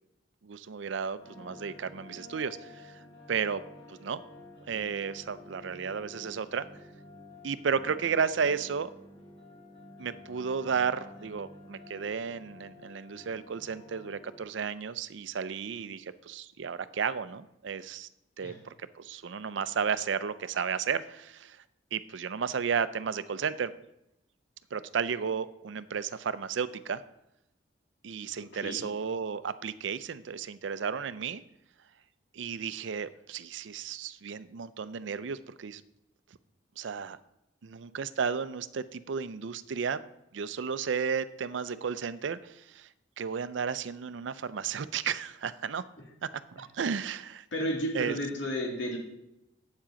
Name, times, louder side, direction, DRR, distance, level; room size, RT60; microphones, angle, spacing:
voice 1, 0.4-2.9 3.3-3.6 3.9-4.2 4.7-6.7 7.4-8.9 10.0-18.1 18.4-21.6 21.9-23.7 24.7-27.0 28.0-31.4 32.3-35.8 36.8-37.2 37.6-40.0 40.3-42.9 43.2-45.8 46.2-47.4 47.9-48.2, right 6 dB, 75° right, 15 dB, 0.5 m, -33 dB
sound 1, 1.2-14.4, left 2 dB, 30° left, 2.3 m, -51 dB
voice 2, 47.5-49.0, equal, 75° left, 0 dB, 2.4 m, -32 dB
8.4 x 7.4 x 5.1 m, 0.87 s
head